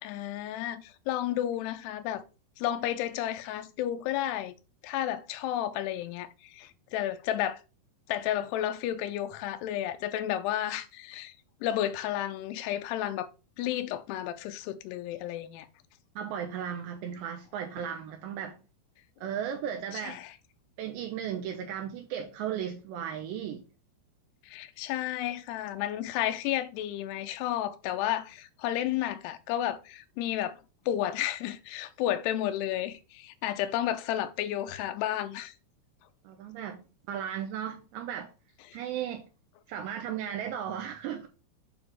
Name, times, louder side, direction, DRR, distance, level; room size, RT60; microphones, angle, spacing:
voice 1, 0.0-2.2 2.6-4.5 4.8-7.6 8.1-11.3 11.6-13.3 13.6-15.7 19.9-20.3 24.4-30.6 30.9-35.5 38.7-38.8, left 12 dB, 85° left, 2.4 m, -32 dB
voice 2, 16.2-18.6 19.2-20.2 20.8-23.7 36.2-38.3 38.7-39.3 39.7-41.3, right 9 dB, 80° right, 2.8 m, -35 dB
9.1 x 3.4 x 6.3 m
omnidirectional pair, 5.6 m